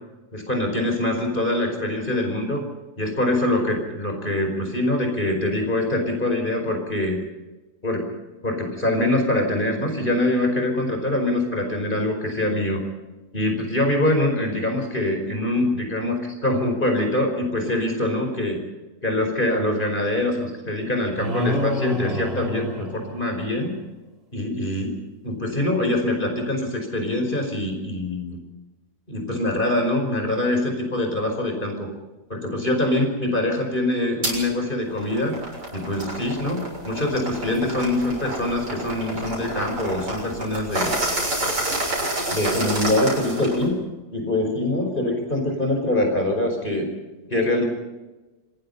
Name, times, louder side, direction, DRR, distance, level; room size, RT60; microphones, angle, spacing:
voice 1, 0.3-2.6 3.0-7.2 7.8-8.1 8.4-12.8 13.3-18.6 19.0-23.7 24.3-25.0 25.2-28.4 29.1-31.9 32.3-35.3 35.7-40.9 42.3-43.8 44.1-46.9 47.3-47.6, left 1 dB, 30° left, 3 dB, 5.3 m, -24 dB
sound 1, 21.2-23.7, left 1 dB, 35° right, 3.6 m, -28 dB
sound 2, 34.2-34.4 34.9-43.7, right 1 dB, 85° right, 7.7 m, -28 dB
27.5 x 20.0 x 5.6 m, 1.1 s
omnidirectional pair, 1.8 m